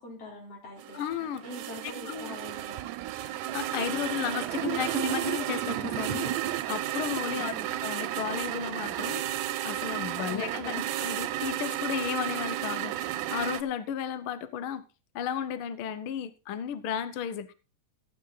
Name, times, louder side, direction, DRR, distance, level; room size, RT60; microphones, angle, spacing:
voice 1, 0.0-1.0 1.4-2.8 7.3-7.7 10.3-11.0, left 2 dB, 50° left, 5.0 m, -44 dB
sound 1, 0.8-13.6, right 13 dB, 90° right, 2.2 m, -33 dB
voice 2, 0.9-1.4 1.8-2.3 3.5-14.8 15.1-17.5, left 8 dB, 80° left, 1.1 m, -34 dB
sound 2, 2.1-7.4, right 12 dB, 70° right, 1.9 m, -36 dB
14.5 x 8.8 x 4.0 m
omnidirectional pair, 3.5 m